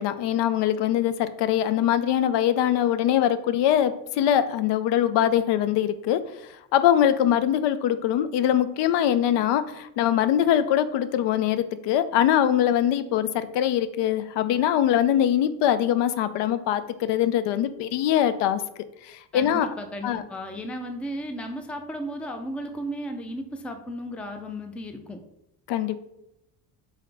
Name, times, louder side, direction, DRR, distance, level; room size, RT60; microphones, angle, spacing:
voice 1, 0.0-6.2 6.7-18.6 19.1-19.7 20.0-20.2 25.7-26.0, left 10 dB, 80° left, 12 dB, 0.5 m, -22 dB
voice 2, 19.3-25.2, equal, 5° left, 5 dB, 0.3 m, -34 dB
4.0 x 3.7 x 3.3 m, 0.86 s
cardioid pair, 120°, 42 cm